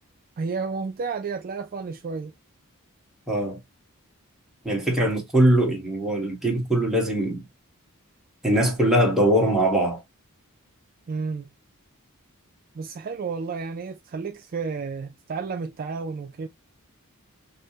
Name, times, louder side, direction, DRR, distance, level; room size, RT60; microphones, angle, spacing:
voice 1, 0.4-2.3 11.1-11.5 12.8-16.5, right 4 dB, 40° right, 0.3 m, -31 dB
voice 2, 3.3-3.6 4.6-7.4 8.4-10.0, right 1 dB, ahead, 1.3 m, -21 dB
5.4 x 2.1 x 2.8 m
head